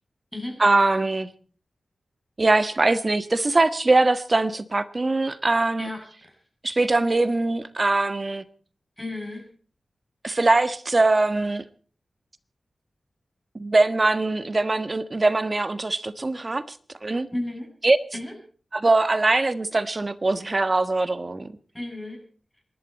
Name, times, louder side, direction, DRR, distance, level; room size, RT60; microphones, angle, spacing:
voice 1, 0.6-1.3 2.4-5.9 6.6-8.4 10.2-11.6 13.5-16.8 17.0-17.3 17.8-18.0 18.7-21.5, right 2 dB, 40° right, 1.4 m, -22 dB
voice 2, 5.8-6.4 9.0-9.5 17.3-17.7 18.1-18.3 21.7-22.2, left 1 dB, 5° left, 6.9 m, -33 dB
27.0 x 12.0 x 4.2 m
wide cardioid pair, 65°, 0 cm